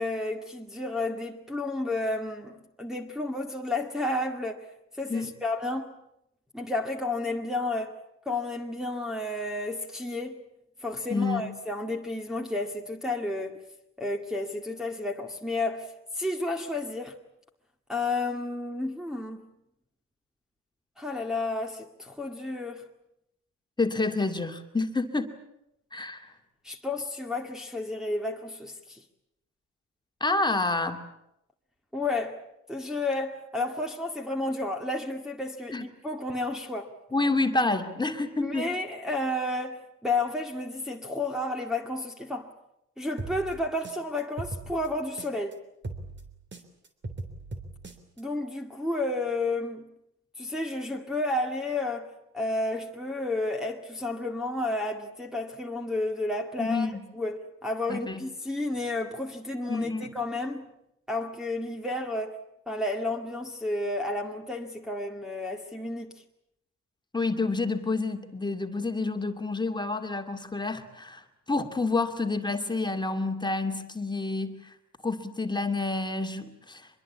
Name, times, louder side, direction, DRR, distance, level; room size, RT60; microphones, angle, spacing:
voice 1, 0.0-4.7 5.0-5.9 6.5-7.9 8.3-10.4 10.8-13.6 14.0-17.2 17.9-19.5 21.0-22.9 26.6-29.0 31.9-32.4 32.7-36.9 38.4-42.5 43.0-45.6 48.2-49.9 50.4-60.7 61.1-62.4 62.7-66.2, left 2 dB, ahead, 2.1 m, -31 dB
voice 2, 11.1-11.5 23.8-25.3 25.9-26.3 30.2-31.0 35.7-35.8 37.1-38.7 56.6-57.0 57.9-58.3 59.7-60.2 67.1-74.7 75.0-77.0, left 3 dB, 15° left, 2.4 m, -29 dB
sound 1, 43.2-45.5 45.8-48.2, right 2 dB, 35° right, 3.5 m, -39 dB
24.5 x 22.0 x 8.5 m
cardioid pair, 90°, 30 cm